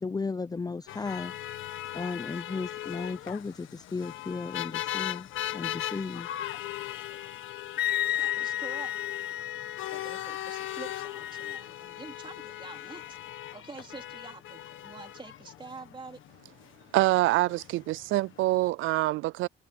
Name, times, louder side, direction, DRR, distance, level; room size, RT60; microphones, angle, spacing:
voice 1, 0.0-1.3 1.9-6.3, left 4 dB, 20° left, 0.6 m, -35 dB
sound 1, 0.9-18.7, left 13 dB, 85° left, 1.7 m, -39 dB
Wind instrument woodwind instrument, 7.8-11.6, left 13 dB, 55° left, 0.6 m, -33 dB
voice 2, 8.2-8.9 9.8-13.2 13.5-16.2, right 3 dB, 25° right, 3.2 m, -46 dB
voice 3, 16.9-19.5, right 18 dB, 85° right, 0.4 m, -25 dB
cardioid pair, 90°, 20 cm